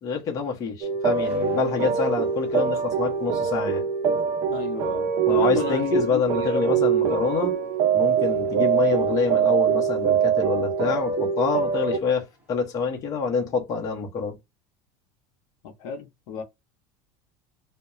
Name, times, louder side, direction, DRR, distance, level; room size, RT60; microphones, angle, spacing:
voice 1, 0.0-3.8 5.3-7.5 7.9-14.4, left 5 dB, 30° left, 0.8 m, -26 dB
sound 1, 0.8-12.0, right 7 dB, 45° right, 0.5 m, -24 dB
sound 2, 1.1-4.0 4.2-12.7, equal, 15° right, 1.1 m, -47 dB
voice 2, 4.5-7.2 15.6-16.4, left 6 dB, 65° left, 0.7 m, -32 dB
2.3 x 2.1 x 2.9 m
cardioid pair, 150°, 12 cm